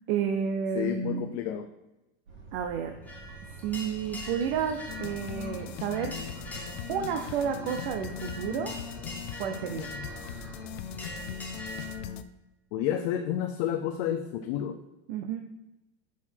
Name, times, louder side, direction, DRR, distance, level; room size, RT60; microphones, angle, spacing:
voice 1, 0.1-1.4 2.5-3.0 3.6-6.1 6.9-8.7 9.4-9.9 15.1-15.4, right 7 dB, 55° right, 5 dB, 0.7 m, -31 dB
voice 2, 0.7-1.7 12.7-14.8, left 10 dB, 40° left, 6 dB, 0.4 m, -30 dB
sound 1, 2.3-12.1, right 3 dB, 85° right, 2.9 m, -47 dB
sound 2, 3.0-11.9, equal, 5° left, 1.0 m, -43 dB
sound 3, 4.9-12.2, left 12 dB, 80° left, 0.6 m, -40 dB
6.4 x 5.8 x 4.5 m, 0.97 s
supercardioid pair, 165°, 31 cm